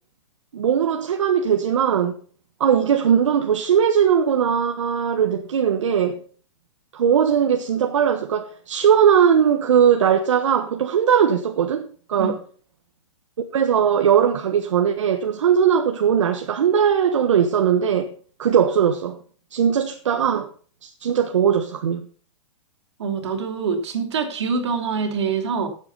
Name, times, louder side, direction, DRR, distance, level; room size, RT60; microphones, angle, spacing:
voice 1, 0.5-2.2 2.6-6.2 6.9-12.4 13.5-18.1 18.4-19.2 19.5-20.5 20.8-22.0, right 8 dB, 80° right, 1.4 m, -19 dB
voice 2, 23.0-25.7, right 5 dB, 65° right, 3.2 m, -25 dB
11.5 x 8.2 x 5.6 m
hypercardioid pair, 175°, 16 cm